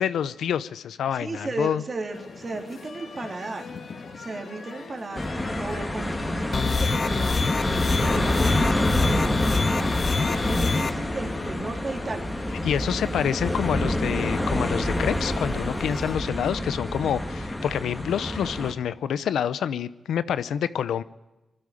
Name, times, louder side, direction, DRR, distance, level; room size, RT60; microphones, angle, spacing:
voice 1, 0.0-1.8 12.6-21.0, left 9 dB, 85° left, 16 dB, 0.7 m, -27 dB
voice 2, 1.1-3.7 4.2-7.7 8.0-12.3 13.6-13.9, right 3 dB, 40° right, 4 dB, 3.3 m, -35 dB
sound 1, 2.1-16.2, left 4 dB, 65° left, 2.5 m, -42 dB
sound 2, 5.1-18.7, left 1 dB, 15° left, 2.5 m, -27 dB
sound 3, 6.5-10.9, left 4 dB, 45° left, 1.0 m, -26 dB
21.5 x 12.5 x 9.8 m, 1.1 s
cardioid pair, 70°, 0 cm